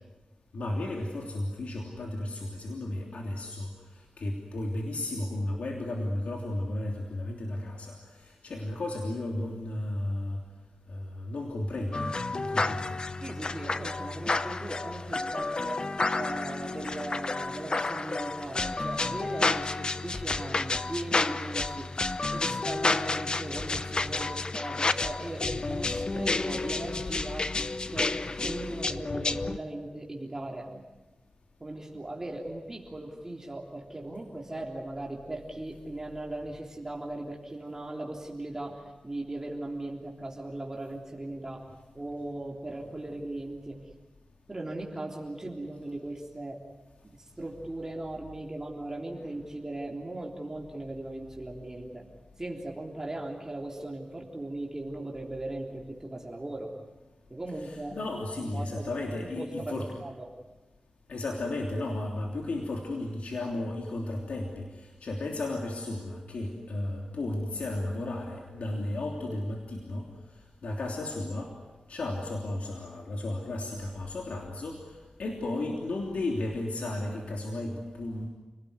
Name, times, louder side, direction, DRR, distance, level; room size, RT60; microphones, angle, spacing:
voice 1, 0.5-10.4 10.9-12.9 57.6-59.9 61.1-70.1 70.6-71.5 71.9-78.3, left 2 dB, 80° left, 0 dB, 3.2 m, -34 dB
sound 1, 11.9-29.6, left 3 dB, 40° left, 0.9 m, -30 dB
voice 2, 13.2-15.8 16.1-21.9 22.3-27.5 27.9-28.1 28.4-30.8 31.6-41.6 41.9-43.8 44.5-46.6 47.0-52.1 52.4-56.7 57.3-58.0 58.4-58.9 59.2-60.3, right 1 dB, 25° right, -1 dB, 3.4 m, -38 dB
29.5 x 18.5 x 9.6 m, 1.2 s
wide cardioid pair, 90°, 2 cm